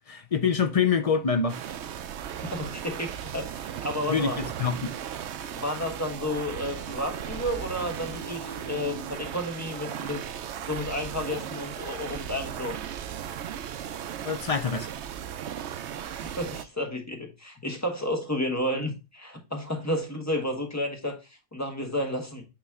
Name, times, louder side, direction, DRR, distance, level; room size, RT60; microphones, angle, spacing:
voice 1, 0.1-1.6 4.1-4.9 14.2-14.9, left 6 dB, 45° left, 0.5 m, -25 dB
sound 1, 1.5-16.6, right 9 dB, 70° right, 0.9 m, -37 dB
voice 2, 2.5-4.4 5.4-10.3 10.7-12.8 16.0-21.2 21.5-22.4, left 1 dB, 15° left, 1.2 m, -31 dB
Piano, 5.9-9.4, right 2 dB, 5° right, 1.0 m, -44 dB
8.8 x 3.1 x 3.6 m
omnidirectional pair, 1.2 m